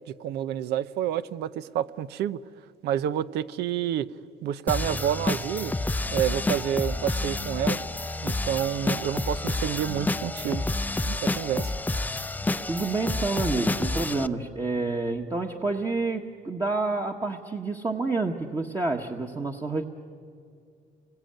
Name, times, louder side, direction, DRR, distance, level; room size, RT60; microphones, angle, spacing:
voice 1, 0.2-2.4 2.8-4.1 4.4-5.8 6.1-7.8 8.2-10.6 11.1-11.7, right 11 dB, 75° right, 15 dB, 0.8 m, -29 dB
sound 1, 4.7-14.3, left 2 dB, 10° left, 0.6 m, -29 dB
voice 2, 12.7-19.8, right 3 dB, 20° right, 1 dB, 1.5 m, -28 dB
29.0 x 23.0 x 9.0 m, 2.3 s
cardioid pair, 110°, 17 cm